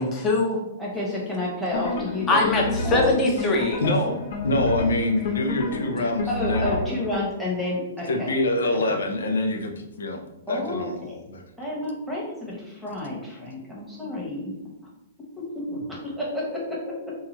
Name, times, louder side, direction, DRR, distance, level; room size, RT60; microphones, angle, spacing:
voice 1, 0.0-0.6 2.3-3.8, left 2 dB, 20° left, 0 dB, 0.7 m, -22 dB
voice 2, 0.8-2.5 2.8-3.1 5.9-8.3 8.7-9.0 10.5-11.1 11.6-14.5 15.4-17.2, left 1 dB, ahead, -5 dB, 1.0 m, -30 dB
sound 1, 1.7-7.2, left 3 dB, 65° left, 0.9 m, -30 dB
voice 3, 3.8-4.2 4.4-6.9 8.1-10.2 10.5-11.0 11.3-11.4, left 2 dB, 85° left, 4 dB, 0.6 m, -25 dB
2.8 x 2.4 x 4.0 m, 0.95 s
hypercardioid pair, 145°, 0 cm